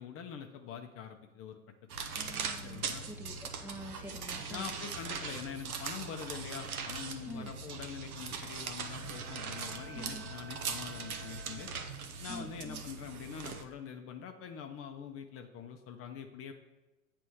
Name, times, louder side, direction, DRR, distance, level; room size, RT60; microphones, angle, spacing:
voice 1, 0.0-1.6 2.6-3.1 4.5-11.7 12.2-16.5, left 7 dB, 35° left, 5 dB, 0.7 m, -44 dB
sound 1, 1.9-13.6, right 5 dB, 85° right, 0.9 m, -40 dB
voice 2, 2.1-4.8 7.2-7.5 9.9-10.3 12.3-12.8, equal, 5° right, 2 dB, 0.7 m, -46 dB
Bowed string instrument, 8.9-12.3, right 4 dB, 35° right, 1.2 m, -53 dB
8.1 x 3.4 x 6.2 m, 1.1 s
hypercardioid pair, 100°, 42 cm